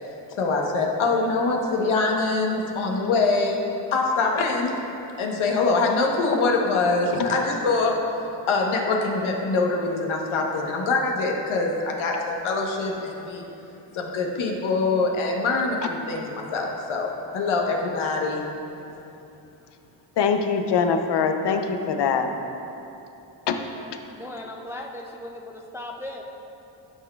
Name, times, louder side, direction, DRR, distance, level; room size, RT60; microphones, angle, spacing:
voice 1, 0.4-3.6 3.9-4.7 5.2-8.0 8.5-13.4 13.9-18.4, left 3 dB, 85° left, 0 dB, 1.1 m, -24 dB
voice 2, 20.2-22.3 23.5-23.6, left 6 dB, 60° left, 6 dB, 0.7 m, -23 dB
voice 3, 24.2-26.2, left 1 dB, 5° right, 1 dB, 0.3 m, -37 dB
12.0 x 6.0 x 2.3 m, 2.9 s
cardioid pair, 115°, 47 cm